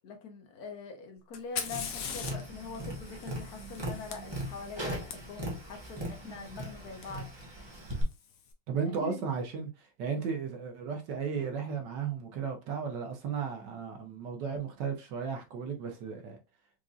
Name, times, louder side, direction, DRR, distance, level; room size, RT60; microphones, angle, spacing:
voice 1, 0.0-7.3 9.0-9.2, left 5 dB, 60° left, 1.1 m, -43 dB
Fire, 1.3-5.1 7.0-7.1 8.0-8.4, left 7 dB, 85° left, 0.7 m, -41 dB
Tap, 1.6-8.0, right 1 dB, 30° right, 0.5 m, -40 dB
voice 2, 8.7-16.4, right 6 dB, 70° right, 1.2 m, -35 dB
4.8 x 2.6 x 2.4 m
omnidirectional pair, 2.2 m